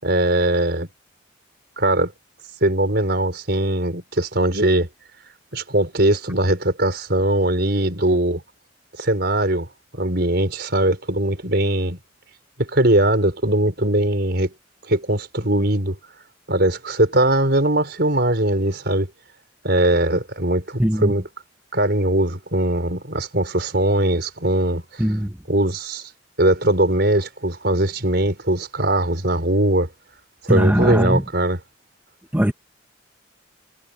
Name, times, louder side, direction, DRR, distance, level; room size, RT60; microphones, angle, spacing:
voice 1, 0.0-0.9 1.8-2.1 2.6-4.9 5.5-8.4 9.0-9.7 9.9-12.0 12.6-14.5 14.9-16.0 16.5-19.1 19.6-21.3 21.7-25.1 25.5-26.1 26.4-29.9 30.4-31.6, right 1 dB, 55° right, 5.3 m, -20 dB
voice 2, 20.8-21.1 25.0-25.3 30.5-31.2 32.3-32.5, equal, 10° right, 1.2 m, -19 dB
head